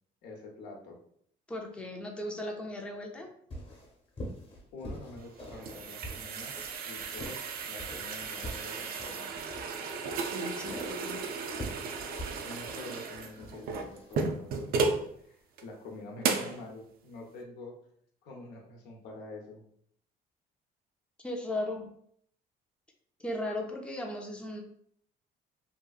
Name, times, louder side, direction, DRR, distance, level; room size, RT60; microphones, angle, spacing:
voice 1, 0.2-1.0 4.7-6.5 6.8-9.4 12.4-17.7 18.2-19.6, left 2 dB, 90° left, 1 dB, 0.7 m, -46 dB
voice 2, 1.5-3.3 10.3-11.2 11.8-11.9 21.2-21.9 23.2-24.6, left 1 dB, 5° left, 1 dB, 0.4 m, -37 dB
sound 1, 3.5-14.2, equal, 30° left, 0.8 m, -45 dB
sound 2, 5.2-15.1 15.6-15.7 16.2-16.6, right 4 dB, 60° right, 0.4 m, -34 dB
2.8 x 2.5 x 2.3 m, 0.66 s
cardioid pair, 110°, 17 cm